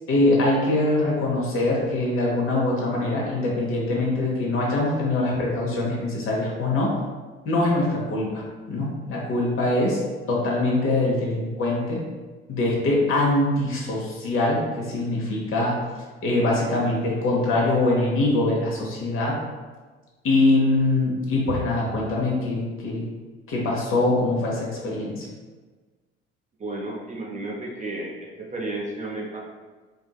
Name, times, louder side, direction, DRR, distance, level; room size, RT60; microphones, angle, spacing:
voice 1, 0.1-6.9 7.4-8.4 8.7-10.0 10.3-12.0 12.5-15.7 16.2-19.4 20.2-23.0 23.5-25.3, left 2 dB, 45° left, -3 dB, 1.0 m, -23 dB
voice 2, 26.6-29.4, right 2 dB, 25° right, -2 dB, 0.7 m, -32 dB
3.5 x 2.7 x 2.3 m, 1.3 s
hypercardioid pair, 60°, 30 cm